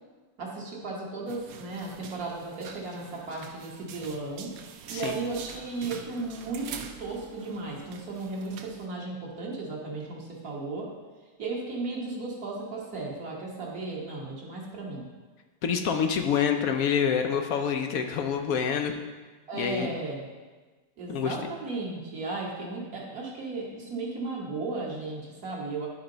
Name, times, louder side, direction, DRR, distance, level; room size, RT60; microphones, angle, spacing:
voice 1, 0.4-4.5 4.9-10.9 11.4-15.0 19.5-20.3 21.0-25.9, right 3 dB, 55° right, -3 dB, 1.9 m, -35 dB
sound 1, 1.3-8.9, right 7 dB, 70° right, 0.8 m, -45 dB
voice 2, 15.6-18.9 19.5-19.9 21.1-21.4, left 7 dB, 70° left, 5 dB, 0.8 m, -27 dB
11.0 x 4.4 x 3.9 m, 1.3 s
omnidirectional pair, 2.0 m